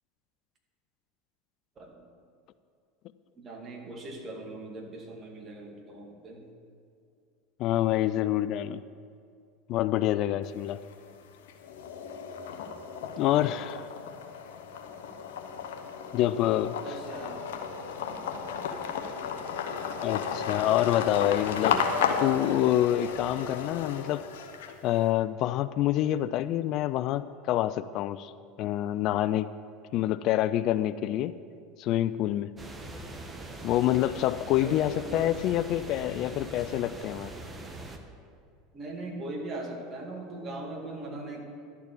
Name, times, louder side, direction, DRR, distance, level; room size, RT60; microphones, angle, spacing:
voice 1, 3.4-6.4 16.8-17.6 34.6-35.3 38.7-41.4, right 2 dB, 35° right, 1 dB, 2.2 m, -40 dB
voice 2, 7.6-8.8 9.7-10.8 13.2-13.8 16.1-16.9 20.0-21.8 22.2-24.2 24.8-28.3 28.6-29.5 29.9-31.3 31.8-32.5 33.6-37.3, left 13 dB, 55° left, 14 dB, 0.3 m, -27 dB
sound 1, 10.4-11.1 11.5-25.0, left 6 dB, 80° left, 0.9 m, -34 dB
sound 2, 32.6-38.0, right 2 dB, 20° right, 1.1 m, -42 dB
12.0 x 4.6 x 8.4 m, 2.4 s
hypercardioid pair, 95°, 0 cm